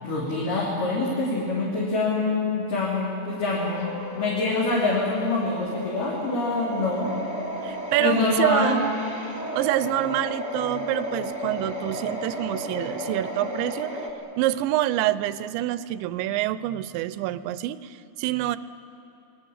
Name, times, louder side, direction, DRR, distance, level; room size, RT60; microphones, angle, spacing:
voice 1, 0.0-7.1 8.0-8.8, left 3 dB, 50° left, -6 dB, 4.8 m, -25 dB
sound 1, 3.3-14.1, equal, 10° left, 1.0 m, -34 dB
voice 2, 7.6-8.9 9.5-13.9 14.4-18.6, right 14 dB, 80° right, 15 dB, 2.9 m, -26 dB
29.5 x 21.0 x 7.3 m, 3.0 s
omnidirectional pair, 5.3 m